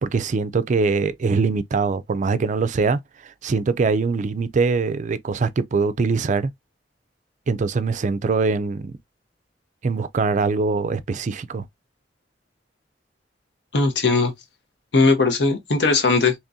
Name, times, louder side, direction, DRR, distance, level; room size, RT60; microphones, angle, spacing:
voice 1, 0.0-6.5 7.5-8.9 9.8-11.6, right 4 dB, 45° right, 0.4 m, -23 dB
voice 2, 13.7-14.3 14.9-16.3, left 3 dB, 70° left, 0.9 m, -18 dB
3.6 x 2.9 x 2.7 m
head